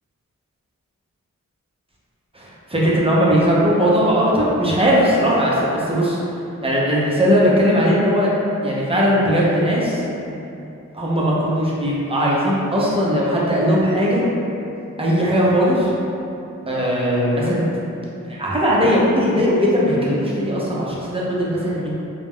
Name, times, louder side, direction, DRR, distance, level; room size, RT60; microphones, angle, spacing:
voice 1, 2.3-6.2 6.6-8.3 8.6-10.0 10.9-14.2 15.0-15.9 16.7-17.8 18.3-21.9, equal, 20° right, -6 dB, 0.6 m, -18 dB
2.3 x 2.0 x 3.5 m, 2.7 s
wide cardioid pair, 55°, 32 cm